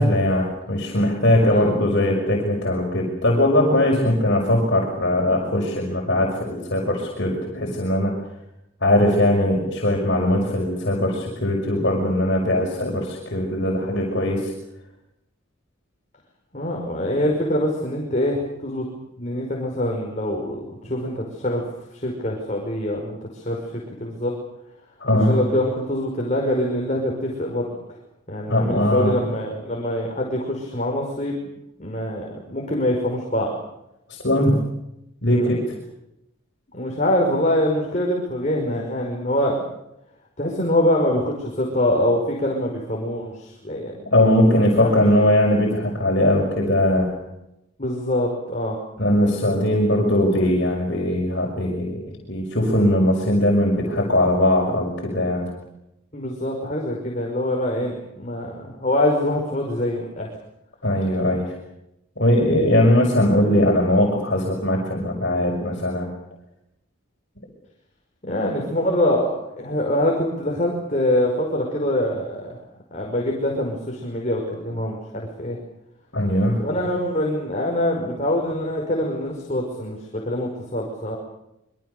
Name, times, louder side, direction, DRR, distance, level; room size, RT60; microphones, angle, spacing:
voice 1, 0.0-8.1 8.8-14.5 25.0-25.4 28.5-29.2 34.2-34.5 35.2-35.6 44.1-47.1 49.0-52.0 52.3-55.5 60.8-61.5 62.2-66.1 76.1-76.6, left 1 dB, 55° left, -2 dB, 5.9 m, -20 dB
voice 2, 1.5-2.1 16.5-18.9 19.2-21.6 21.9-23.6 24.0-24.3 25.1-27.7 28.3-31.4 31.8-33.5 35.3-35.6 36.7-39.6 40.4-43.9 44.4-45.0 47.8-48.8 56.1-60.3 68.2-72.6 72.9-75.6 76.6-80.0 80.2-81.2, left 1 dB, 35° left, -1 dB, 5.3 m, -24 dB
26.5 x 23.5 x 6.9 m, 0.84 s
head